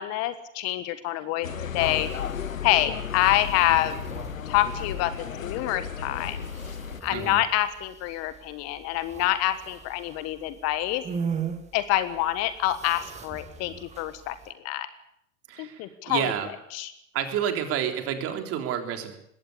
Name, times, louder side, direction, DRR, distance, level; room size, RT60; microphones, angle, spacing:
voice 1, 0.0-1.5 1.7-2.1 2.6-4.0 4.5-6.5 7.0-11.0 11.7-14.9 15.6-16.3 16.7-16.9, left 14 dB, 40° left, 13 dB, 1.5 m, -26 dB
sound 1, 1.4-7.0, left 8 dB, 80° left, 1.3 m, -34 dB
sound 2, 1.8-14.5, right 6 dB, 15° right, 2.4 m, -40 dB
voice 2, 15.5-16.5 17.1-19.2, right 9 dB, 35° right, 5 dB, 3.6 m, -29 dB
21.0 x 17.0 x 8.4 m, 0.74 s
figure-of-eight pair, 100°, 40 cm